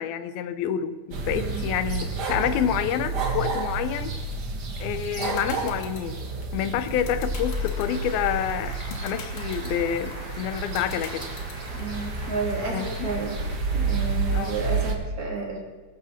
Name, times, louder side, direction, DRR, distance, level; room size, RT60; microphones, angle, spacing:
voice 1, 0.0-4.1 4.8-6.2 6.5-11.2 12.7-13.1 14.3-14.6, left 10 dB, 75° left, 11 dB, 2.6 m, -28 dB
sound 1, 1.1-14.9, right 4 dB, 80° right, 0.9 m, -30 dB
sound 2, 4.8-11.8, left 6 dB, 45° left, 2.3 m, -41 dB
Applause / Crowd, 6.1-14.9, equal, 40° right, 7.5 m, -43 dB
voice 2, 11.7-13.4 13.7-15.6, right 3 dB, 25° right, -1 dB, 3.2 m, -31 dB
21.0 x 12.0 x 4.4 m, 1.3 s
omnidirectional pair, 4.5 m